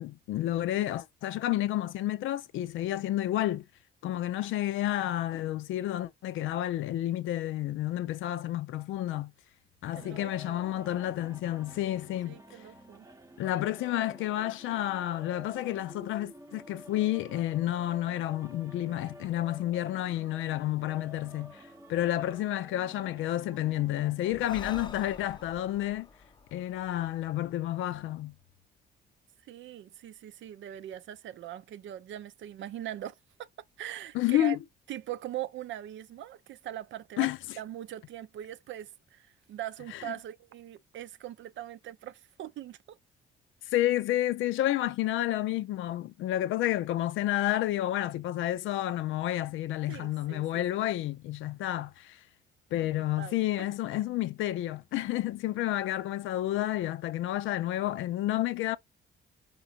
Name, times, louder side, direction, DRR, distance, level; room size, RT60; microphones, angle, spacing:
voice 1, 0.0-3.6 4.0-9.3 9.8-12.4 13.4-21.6 21.9-26.1 26.5-28.3 34.1-34.6 37.2-37.4 40.0-40.1 43.7-52.2 52.7-58.8, left 14 dB, 80° left, 0.5 m, -30 dB
sound 1, 9.9-24.9, equal, 15° right, 0.7 m, -51 dB
voice 2, 9.9-10.8 12.2-13.1 29.4-33.5 33.8-34.6 34.9-37.3 37.6-43.0 49.9-50.6 53.2-53.7, right 12 dB, 70° right, 0.6 m, -41 dB
Breathing, 24.3-27.9, left 4 dB, 25° left, 0.5 m, -47 dB
5.2 x 3.8 x 2.7 m
cardioid pair, 90°, 20 cm